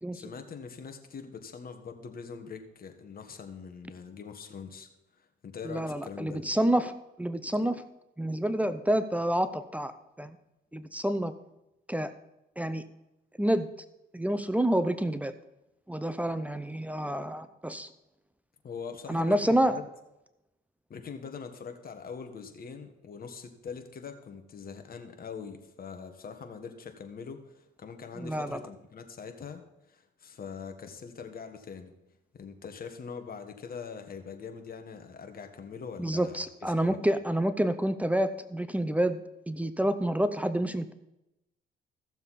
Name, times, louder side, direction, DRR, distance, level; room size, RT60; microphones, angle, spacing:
voice 1, 0.1-4.9 5.2-6.5 18.6-19.8 20.9-29.6 29.9-31.9 32.3-37.0, left 6 dB, 50° left, 6 dB, 1.5 m, -43 dB
voice 2, 5.6-6.9 7.2-7.8 8.2-9.9 10.2-10.4 10.7-11.3 11.9-12.1 12.6-12.8 13.4-13.7 14.1-15.3 15.9-17.9 19.1-19.8 28.2-28.6 36.0-39.2 39.5-40.9, right 1 dB, 5° right, 12 dB, 0.6 m, -28 dB
15.0 x 7.0 x 4.2 m, 0.92 s
cardioid pair, 90°, 20 cm